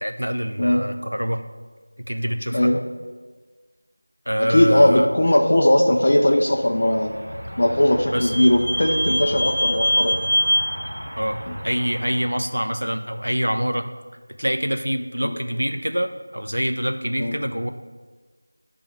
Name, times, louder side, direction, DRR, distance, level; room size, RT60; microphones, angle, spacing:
voice 1, 0.0-1.4 2.0-2.7 4.3-5.1 8.1-8.3 11.2-13.9 14.4-17.7, equal, 75° right, 6 dB, 0.5 m, -25 dB
voice 2, 4.5-7.1 7.6-10.2 15.2-15.4 17.2-17.4, left 1 dB, 35° left, 1 dB, 0.4 m, -18 dB
Vehicle / Squeak, 6.7-12.3, equal, 25° right, 1.0 m, -25 dB
9.6 x 3.4 x 3.4 m, 1.4 s
figure-of-eight pair, 175°, 0 cm